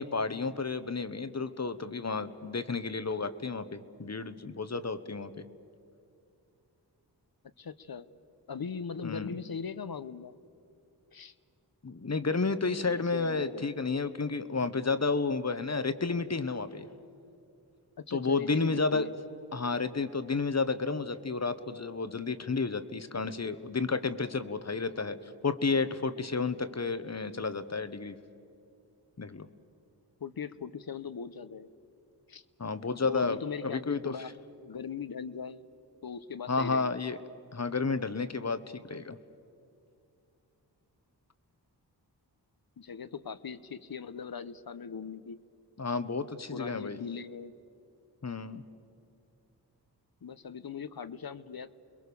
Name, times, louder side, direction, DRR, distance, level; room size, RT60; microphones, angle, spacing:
voice 1, 0.0-5.4 9.0-9.3 11.8-16.9 18.1-19.1 19.5-28.2 29.2-29.5 32.6-34.1 36.5-37.2 37.5-39.2 45.8-47.0 48.2-48.6, left 4 dB, 40° left, 12 dB, 1.3 m, -31 dB
voice 2, 7.6-8.0 8.5-10.3 11.1-11.3 12.9-13.6 18.1-19.1 30.2-31.7 32.3-32.4 33.0-34.3 34.6-35.6 36.0-36.9 42.8-45.4 45.9-46.0 46.5-47.5 50.2-51.7, left 6 dB, 55° left, 13 dB, 1.0 m, -40 dB
30.0 x 22.0 x 7.0 m, 2.6 s
cardioid pair, 50°, 42 cm